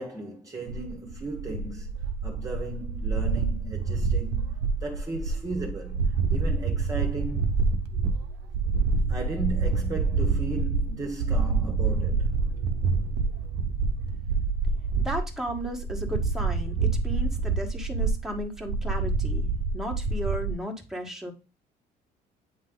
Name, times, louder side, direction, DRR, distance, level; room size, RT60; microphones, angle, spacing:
voice 1, 0.0-7.5 9.1-12.4, right 3 dB, 20° right, 1.3 m, -36 dB
sound 1, 0.7-20.5, right 4 dB, 90° right, 0.9 m, -27 dB
voice 2, 15.0-16.7 17.0-21.3, equal, 5° right, 1.6 m, -34 dB
8.9 x 3.3 x 3.8 m
cardioid pair, 110°, 17 cm